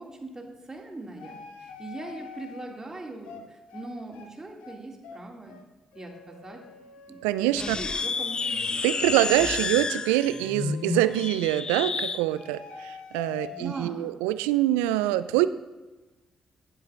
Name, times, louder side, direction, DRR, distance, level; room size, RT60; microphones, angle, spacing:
voice 1, 0.0-5.6 5.9-6.6 7.1-8.7 13.5-14.1, right 2 dB, 25° right, 1 dB, 2.0 m, -41 dB
sound 1, 1.2-2.7 3.3-3.4 3.7-3.9 4.1-4.3 4.6-4.8 5.0-5.2 5.5-5.7 5.9-11.7 12.3-13.7, left 7 dB, 75° left, 0.9 m, -46 dB
voice 2, 7.2-7.8 8.8-15.5, right 14 dB, 80° right, 14 dB, 0.3 m, -25 dB
sound 2, 7.5-12.2, left 4 dB, 40° left, 0.4 m, -30 dB
15.0 x 7.9 x 2.4 m, 1.1 s
hypercardioid pair, 40°, 2 cm